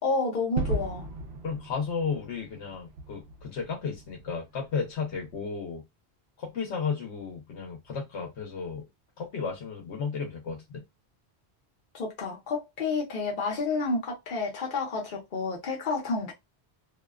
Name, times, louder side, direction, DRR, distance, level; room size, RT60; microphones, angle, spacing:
voice 1, 0.0-1.1 11.9-16.3, left 3 dB, 50° left, 1.0 m, -30 dB
Gunshot gunfire / Fireworks / Boom, 0.6-5.4, right 1 dB, 75° right, 0.8 m, -37 dB
voice 2, 1.4-5.8 6.4-8.8 9.2-10.8, left 5 dB, 85° left, 1.1 m, -33 dB
2.7 x 2.2 x 2.3 m
omnidirectional pair, 1.1 m